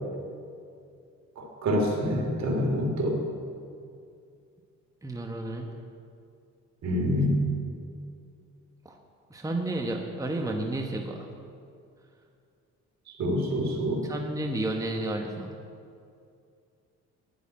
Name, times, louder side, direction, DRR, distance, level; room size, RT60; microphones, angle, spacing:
voice 1, 1.4-3.2 6.8-7.4 13.2-14.0, equal, 60° right, 0 dB, 3.0 m, -26 dB
voice 2, 5.0-5.7 8.8-8.9 9.3-11.3 14.0-15.5, right 1 dB, 10° right, 2 dB, 1.2 m, -31 dB
10.0 x 8.2 x 8.5 m, 2.4 s
cardioid pair, 90°, 30 cm